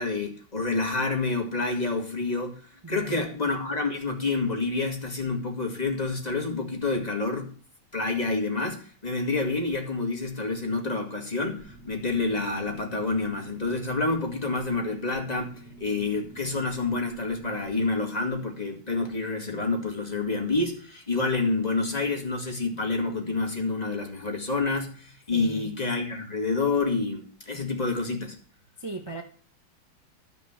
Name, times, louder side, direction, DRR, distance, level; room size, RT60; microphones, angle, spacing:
voice 1, 0.0-2.6 2.9-7.5 7.9-15.5 15.8-28.3, left 3 dB, 20° left, 2 dB, 2.1 m, -28 dB
voice 2, 2.8-3.3 25.3-25.7 28.8-29.2, right 2 dB, 30° right, 3 dB, 0.4 m, -37 dB
sound 1, 11.6-18.0, right 2 dB, 5° right, 2.9 m, -48 dB
13.0 x 5.3 x 7.3 m, 0.43 s
omnidirectional pair, 2.3 m